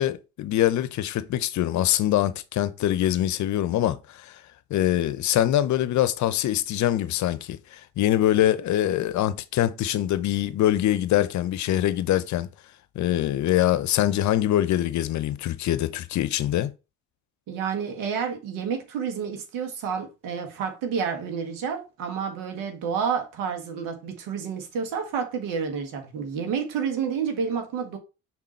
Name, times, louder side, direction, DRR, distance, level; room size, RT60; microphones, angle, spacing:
voice 1, 0.0-4.4 4.7-12.5 13.0-16.7, left 12 dB, 60° left, 0.7 m, -24 dB
voice 2, 17.5-28.0, right 6 dB, 75° right, 1.6 m, -29 dB
6.0 x 3.8 x 4.3 m
supercardioid pair, 75°, 33 cm